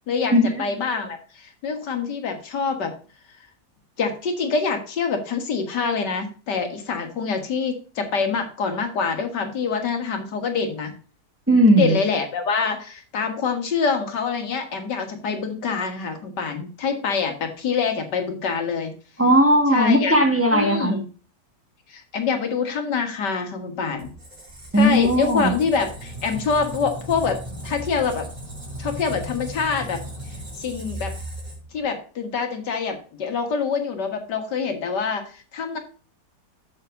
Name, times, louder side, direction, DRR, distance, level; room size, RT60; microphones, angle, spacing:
voice 1, 0.1-2.9 4.0-10.9 11.8-18.9 19.7-20.1 20.5-21.1 21.9-24.1 24.7-28.3 28.8-30.0 30.6-31.2 31.7-35.8, left 5 dB, 80° left, 5 dB, 2.2 m, -25 dB
voice 2, 11.5-11.9 19.2-21.0 24.7-25.5, equal, 10° right, 2 dB, 1.3 m, -17 dB
Squeak, 24.0-31.8, equal, 25° right, 3.1 m, -36 dB
7.0 x 6.7 x 5.1 m, 0.37 s
omnidirectional pair, 1.8 m